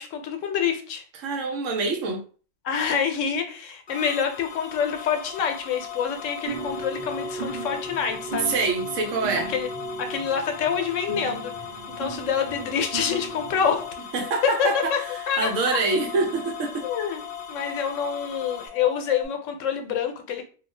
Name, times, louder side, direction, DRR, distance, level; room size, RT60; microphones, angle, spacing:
voice 1, 0.0-1.0 2.6-8.5 9.5-9.7 10.0-11.5 12.0-13.8 14.4-15.0 15.3-15.5 16.8-17.2 17.5-20.4, left 7 dB, 80° left, 1.0 m, -26 dB
voice 2, 1.2-2.2 8.5-9.5 14.1-14.9 15.4-16.9, right 3 dB, 85° right, 1.0 m, -25 dB
sound 1, 3.9-18.7, left 6 dB, 60° left, 0.7 m, -41 dB
sound 2, 4.5-19.3, left 10 dB, 20° left, 0.8 m, -41 dB
sound 3, 6.5-13.9, right 3 dB, 55° right, 0.9 m, -36 dB
2.4 x 2.3 x 3.1 m
omnidirectional pair, 1.3 m